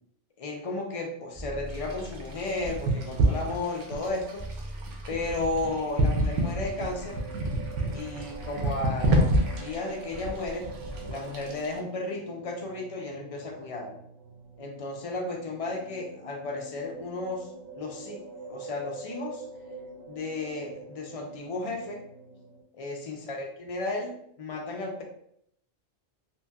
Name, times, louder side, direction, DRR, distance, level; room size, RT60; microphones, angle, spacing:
voice 1, 0.4-4.4 5.1-7.2 7.9-10.7 11.0-14.0 14.6-17.5 17.7-18.2 18.5-19.4 20.1-22.0 22.8-25.0, left 2 dB, 60° left, 1 dB, 0.3 m, -34 dB
sound 1, 1.3-2.8 4.4-5.8, right 1 dB, 25° right, 0.5 m, -41 dB
sound 2, 1.7-11.8, right 1 dB, 85° right, 0.9 m, -29 dB
sound 3, 5.3-22.6, right 2 dB, 65° right, 0.8 m, -46 dB
2.9 x 2.8 x 2.2 m, 0.70 s
omnidirectional pair, 1.2 m